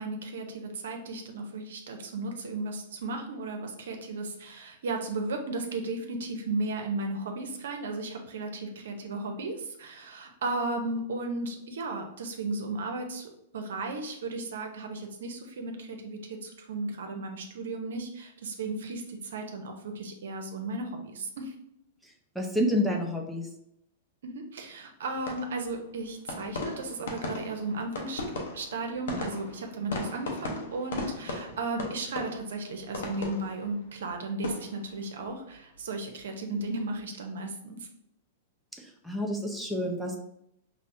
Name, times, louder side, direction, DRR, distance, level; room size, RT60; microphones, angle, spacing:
voice 1, 0.0-21.5 24.2-28.2 28.5-37.8, right 2 dB, 80° right, 4 dB, 0.6 m, -35 dB
voice 2, 22.0-23.5 38.8-40.2, equal, ahead, -1 dB, 0.6 m, -29 dB
sound 1, 25.1-36.2 36.5-37.0, left 2 dB, 80° left, 0.8 m, -38 dB
5.5 x 2.1 x 2.6 m, 0.78 s
hypercardioid pair, 135°, 0 cm